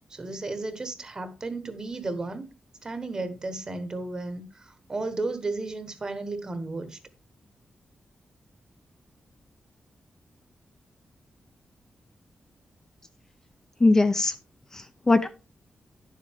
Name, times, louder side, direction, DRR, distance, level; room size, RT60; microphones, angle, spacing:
voice 1, 0.1-2.5 2.8-7.0, right 2 dB, 25° right, 1.1 m, -34 dB
voice 2, 13.8-14.3 14.7-15.3, left 2 dB, 20° left, 0.5 m, -21 dB
11.0 x 7.4 x 3.5 m
wide cardioid pair, 170°, 3 cm